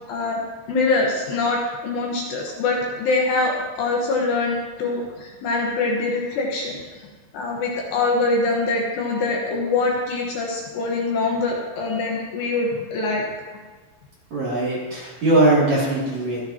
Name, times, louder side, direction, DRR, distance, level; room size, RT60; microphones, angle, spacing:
voice 1, 0.1-0.4 0.7-6.8 7.3-13.2, left 3 dB, 65° left, -2 dB, 3.1 m, -24 dB
voice 2, 14.3-16.4, right 2 dB, 40° right, -7 dB, 3.2 m, -20 dB
25.0 x 8.9 x 2.9 m, 1.4 s
omnidirectional pair, 5.8 m